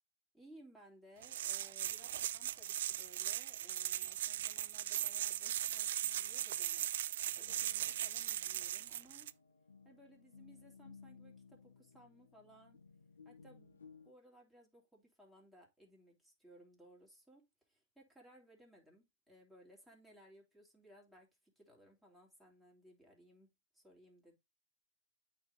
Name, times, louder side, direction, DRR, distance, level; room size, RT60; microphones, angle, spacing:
voice 1, 0.3-9.3 9.8-12.8 13.2-13.8 14.0-17.4 17.7-21.3 21.6-24.3, equal, ahead, 2.9 m, -62 dB
sound 1, 1.2-9.3, right 12 dB, 65° right, 0.4 m, -39 dB
sound 2, 7.5-14.1, left 5 dB, 90° left, 1.3 m, -60 dB
8.6 x 3.6 x 3.9 m
hypercardioid pair, 120°, 0 cm